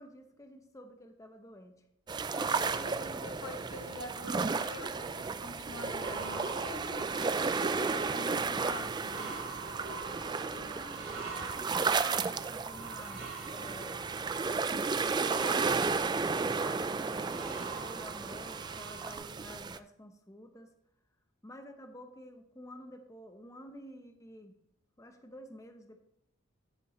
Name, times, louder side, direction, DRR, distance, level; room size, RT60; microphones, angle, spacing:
voice 1, 0.0-1.8 10.4-14.1 15.0-20.7 21.4-24.5 25.0-26.0, equal, 15° left, 5 dB, 0.8 m, -50 dB
sound 1, 2.1-19.8, right 4 dB, 20° right, 0.3 m, -33 dB
voice 2, 2.3-9.5, left 2 dB, 85° left, 5 dB, 1.4 m, -46 dB
sound 2, 6.0-19.2, right 4 dB, 75° right, 4.2 m, -45 dB
13.5 x 6.6 x 3.1 m, 0.78 s
head